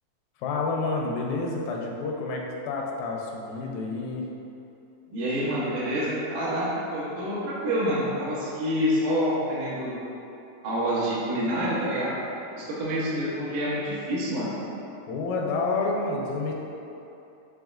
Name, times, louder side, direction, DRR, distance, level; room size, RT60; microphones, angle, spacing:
voice 1, 0.4-4.3 15.1-16.5, left 3 dB, 85° left, -1 dB, 2.3 m, -29 dB
voice 2, 5.1-10.0 10.6-12.2 12.5-14.5, equal, 70° right, -8 dB, 2.3 m, -27 dB
6.2 x 3.2 x 2.4 m, 2.8 s
omnidirectional pair, 4.1 m